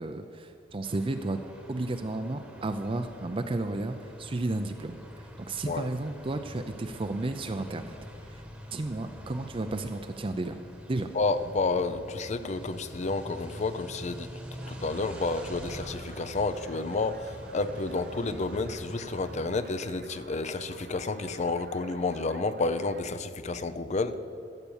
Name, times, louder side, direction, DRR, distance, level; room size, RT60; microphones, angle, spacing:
voice 1, 0.0-1.4 1.7-8.0 8.3-8.4 8.7-10.6 10.9-11.1, right 2 dB, 30° right, 7 dB, 0.5 m, -33 dB
sound 1, 0.8-19.6, equal, 5° right, 1.2 m, -45 dB
voice 2, 11.1-14.3 14.7-24.2, left 3 dB, 35° left, 12 dB, 0.5 m, -30 dB
sound 2, 14.6-23.0, right 4 dB, 60° right, 0.7 m, -50 dB
13.5 x 8.2 x 7.1 m, 2.9 s
head